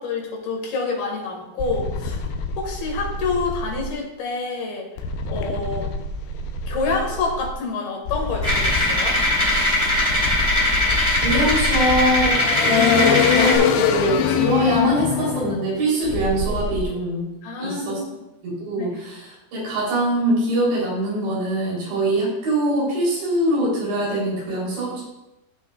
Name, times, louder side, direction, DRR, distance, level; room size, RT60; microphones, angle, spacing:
voice 1, 0.0-2.2 2.6-4.9 5.3-5.9 6.7-9.2 17.4-18.1 18.8-19.0, left 4 dB, 65° left, 0 dB, 3.5 m, -27 dB
sound 1, 1.6-3.9 5.0-7.5 8.1-16.8, left 6 dB, 85° left, 2.1 m, -25 dB
sound 2, 8.4-13.6, left 1 dB, 10° left, 1.9 m, -21 dB
voice 2, 11.2-12.3 12.6-17.3 17.6-18.0 18.4-25.0, right 1 dB, 75° right, -6 dB, 5.7 m, -23 dB
15.5 x 5.9 x 2.4 m, 0.94 s
omnidirectional pair, 5.2 m